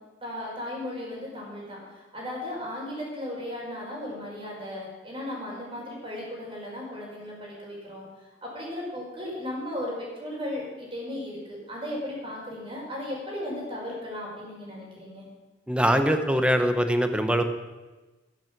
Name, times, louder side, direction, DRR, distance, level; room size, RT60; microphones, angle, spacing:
voice 1, 0.2-8.0 8.4-15.2, left 1 dB, 30° right, -3 dB, 4.9 m, -36 dB
voice 2, 15.7-17.4, equal, 5° right, 7 dB, 1.0 m, -22 dB
12.5 x 10.5 x 6.1 m, 1.2 s
head